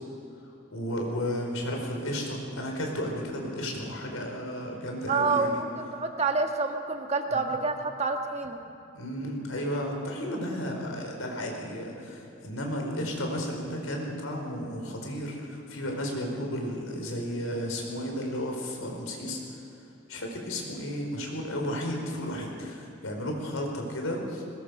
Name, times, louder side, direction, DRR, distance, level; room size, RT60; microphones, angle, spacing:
voice 1, 0.7-5.6 7.4-7.6 8.9-19.6 20.1-24.4, equal, 90° left, 1 dB, 4.7 m, -33 dB
voice 2, 5.1-8.6, right 3 dB, 30° right, 4 dB, 1.6 m, -28 dB
21.5 x 20.5 x 6.6 m, 2.9 s
head